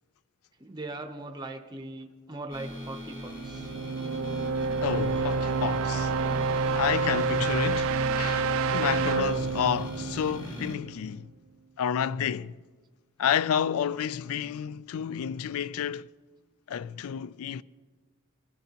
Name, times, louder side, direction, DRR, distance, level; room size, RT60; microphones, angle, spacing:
voice 1, 0.6-3.7, right 2 dB, 20° right, 0.7 m, -40 dB
sound 1, 2.5-10.8, equal, 20° left, 1.9 m, -41 dB
sound 2, 3.3-11.1, right 4 dB, 70° right, 0.4 m, -28 dB
voice 2, 4.8-6.1 6.7-11.3 11.8-12.5 13.2-16.1 16.7-17.6, left 8 dB, 75° left, 0.3 m, -30 dB
20.0 x 11.5 x 2.9 m
head